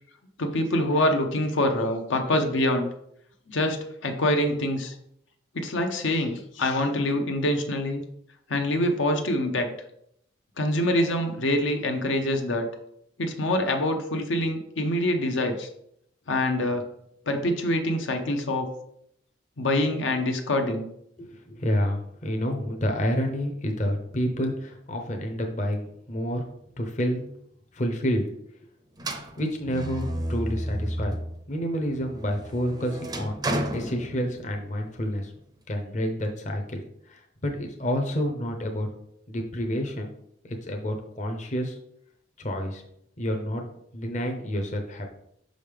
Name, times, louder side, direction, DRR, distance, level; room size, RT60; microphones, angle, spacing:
voice 1, 0.4-2.9 3.5-4.9 5.5-8.0 8.5-9.7 10.6-12.7 13.2-15.7 16.3-16.8 17.3-18.7 19.6-20.9, left 1 dB, 75° left, 4 dB, 0.8 m, -25 dB
voice 2, 21.2-26.5 26.8-27.3 27.7-28.3 29.4-31.2 31.5-35.3 35.7-38.9 39.3-40.1 40.4-41.8 42.4-42.8 43.2-43.7 43.9-45.1, equal, 35° left, 3 dB, 0.7 m, -29 dB
sound 1, 29.0-31.4 31.8-34.7, right 1 dB, 20° right, 0.5 m, -32 dB
5.6 x 5.1 x 3.4 m, 0.73 s
head